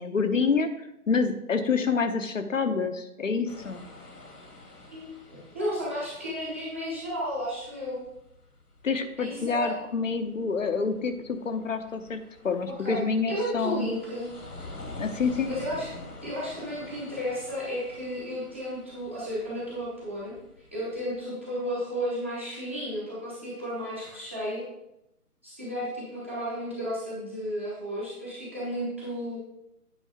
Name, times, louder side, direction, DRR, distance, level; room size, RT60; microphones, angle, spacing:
voice 1, 0.0-3.8 8.8-13.9 15.0-15.5, left 5 dB, 55° left, 8 dB, 0.9 m, -27 dB
sound 1, 3.5-21.2, left 2 dB, 85° left, 2.4 m, -47 dB
voice 2, 4.9-8.0 9.2-9.7 12.8-14.3 15.5-15.9 16.2-20.3 20.7-24.6 25.4-29.4, equal, 10° right, -9 dB, 0.8 m, -33 dB
8.9 x 5.3 x 4.8 m, 0.84 s
figure-of-eight pair, 165°, 45 cm